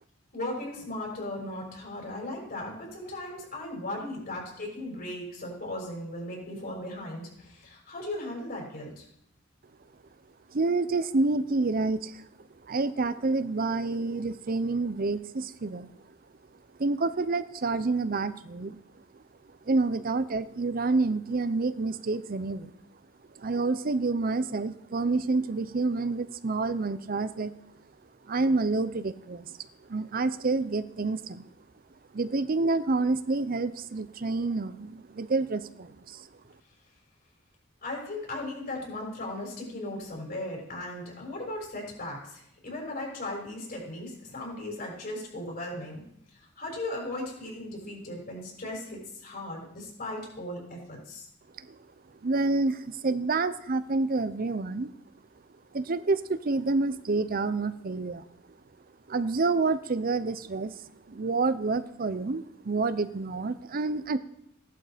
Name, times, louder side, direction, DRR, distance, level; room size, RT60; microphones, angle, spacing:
voice 1, 0.3-9.1 37.8-46.0 46.3-51.3, left 1 dB, 50° left, -1 dB, 6.4 m, -37 dB
voice 2, 10.5-12.3 12.6-15.9 16.8-19.0 19.6-22.7 23.3-27.5 28.2-31.5 32.1-36.3 51.5-51.8 52.2-54.9 55.7-58.2 59.1-64.2, right 3 dB, 45° right, 13 dB, 0.6 m, -28 dB
16.5 x 11.5 x 5.1 m, 0.73 s
head